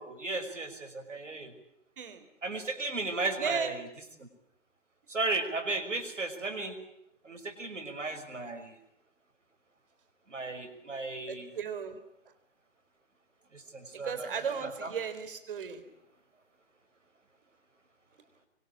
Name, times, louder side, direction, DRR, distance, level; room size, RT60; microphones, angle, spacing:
voice 1, 0.0-1.5 2.4-3.9 4.2-4.3 5.1-6.8 7.2-8.7 10.3-11.5 13.5-14.9, right 3 dB, 80° right, 5 dB, 5.8 m, -35 dB
voice 2, 3.4-3.7 11.3-12.0 14.0-15.8, right 7 dB, 45° right, 10 dB, 4.1 m, -35 dB
26.0 x 24.0 x 8.6 m, 0.80 s
figure-of-eight pair, 150°, 36 cm